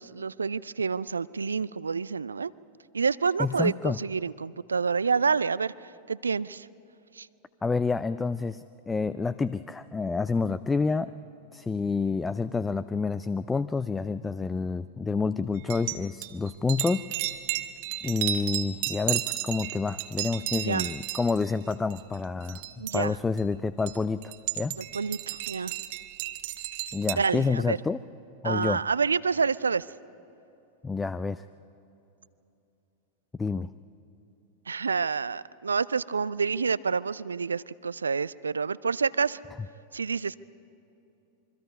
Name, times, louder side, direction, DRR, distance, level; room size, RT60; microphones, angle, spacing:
voice 1, 0.0-2.5 2.9-5.7 6.1-6.7 7.2-7.3 20.6-20.9 22.8-23.2 24.8-25.7 27.2-27.8 28.4-29.9 34.7-39.4 39.9-40.4, right 5 dB, 75° right, 20 dB, 0.4 m, -28 dB
voice 2, 3.4-4.0 7.6-11.1 11.5-17.0 18.0-22.6 22.9-24.8 26.9-28.0 28.4-28.8 30.8-31.4 33.4-33.7, left 4 dB, 10° left, 15 dB, 0.4 m, -28 dB
sound 1, 15.6-16.0 16.2-21.4 21.7-22.2 22.4-23.0 23.4-23.5 23.9-27.1, right 14 dB, 50° right, 1.0 m, -33 dB
26.0 x 23.5 x 5.4 m, 2.9 s
figure-of-eight pair, 90°, 0 cm